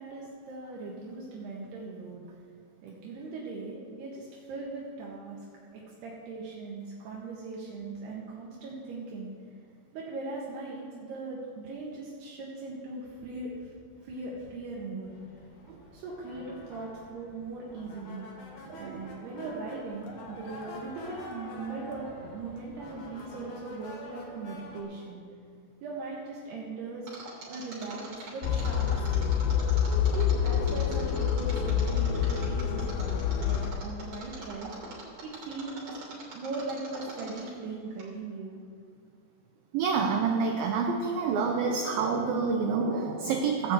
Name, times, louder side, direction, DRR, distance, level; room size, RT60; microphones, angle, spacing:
voice 1, 0.0-2.3 2.8-5.4 5.7-9.3 9.9-13.7 14.0-15.1 15.9-18.3 18.8-25.2 25.8-27.1 27.5-28.9 29.1-29.3 30.0-34.7 35.2-36.0 36.3-38.5, right 3 dB, 70° right, -4 dB, 3.3 m, -39 dB
sound 1, 15.0-24.8, left 1 dB, 55° left, 2.8 m, -47 dB
voice 2, 18.7-19.1 39.7-43.7, right 5 dB, 85° right, 3 dB, 2.0 m, -28 dB
Mechanisms, 27.1-37.6 38.0-38.1, right 3 dB, 40° right, 3.7 m, -43 dB
sound 2, 28.4-33.7, left 8 dB, 90° left, 3.0 m, -27 dB
17.0 x 6.1 x 7.9 m, 2.2 s
omnidirectional pair, 5.1 m